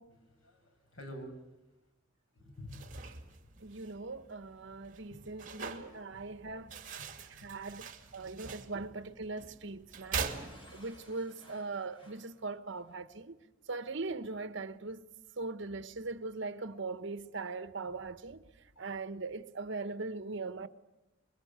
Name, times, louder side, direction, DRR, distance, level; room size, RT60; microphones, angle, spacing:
voice 1, 0.1-1.6 2.5-3.5 6.1-6.2 6.5-6.6 7.0-7.6 8.2-8.3 18.7-19.0, equal, 85° left, 6.1 m, -50 dB
sound 1, 2.6-11.1, right 5 dB, 40° right, 2.5 m, -43 dB
voice 2, 3.6-6.7 7.3-10.3 10.7-13.3 13.7-15.0 15.4-18.5 18.8-20.7, right 3 dB, 65° right, 1.1 m, -40 dB
Explosion / Shatter, 10.2-13.0, equal, 25° left, 5.2 m, -55 dB
26.0 x 23.0 x 8.1 m
head